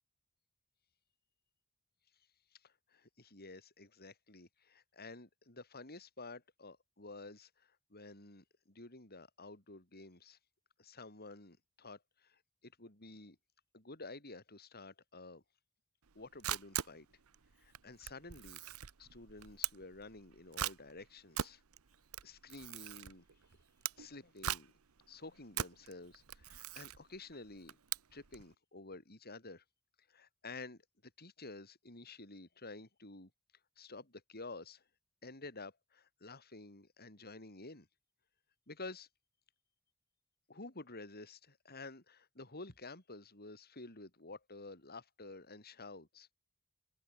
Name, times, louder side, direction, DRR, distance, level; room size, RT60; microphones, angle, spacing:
voice 1, 2.5-10.4 10.8-13.4 13.7-15.4 16.1-17.1 17.6-18.6 19.0-21.6 22.2-23.2 24.0-24.7 25.1-27.8 28.1-29.6 30.1-33.3 33.8-34.8 35.2-37.9 38.7-39.1 40.5-46.3, left 3 dB, 45° left, 5.9 m, -51 dB
Camera, 16.1-28.5, right 10 dB, 85° right, 0.9 m, -42 dB
open air
head